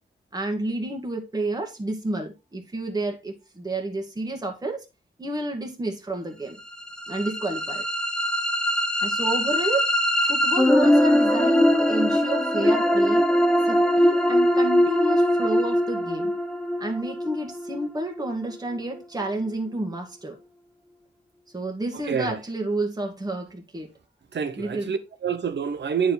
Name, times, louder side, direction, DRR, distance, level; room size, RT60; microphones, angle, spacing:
voice 1, 0.3-4.9 5.2-6.6 7.1-7.8 8.9-9.9 10.2-13.3 13.7-16.3 16.8-20.4 21.5-23.9 24.6-25.0, right 1 dB, 20° right, 1.8 m, -30 dB
sound 1, 6.7-18.8, equal, 5° left, 0.9 m, -22 dB
voice 2, 22.1-22.4 24.3-26.1, right 7 dB, 70° right, 1.1 m, -27 dB
9.1 x 4.8 x 4.0 m
wide cardioid pair, 110°, 19 cm